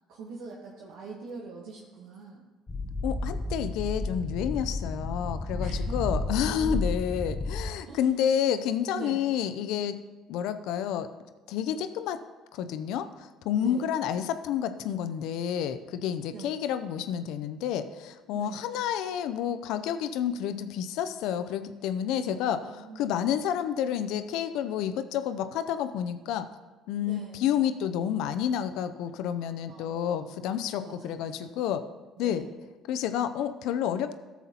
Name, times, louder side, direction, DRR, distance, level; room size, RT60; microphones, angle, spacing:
voice 1, 0.1-2.4 5.6-6.0 6.3-6.8 7.9-8.0 8.9-9.2 13.6-13.8 16.3-16.5 18.3-18.7 22.2-23.2 27.0-27.4 29.7-31.5 32.2-32.6, right 4 dB, 70° right, -2 dB, 1.2 m, -44 dB
sound 1, 2.7-7.7, left 2 dB, 30° left, 0.8 m, -32 dB
voice 2, 3.0-10.0 10.3-11.1 11.5-12.2 12.5-26.5 26.9-31.8 32.2-32.5 32.9-34.1, left 9 dB, 70° left, 11 dB, 0.5 m, -30 dB
13.5 x 7.1 x 2.9 m, 1.2 s
hypercardioid pair, 65°, 0 cm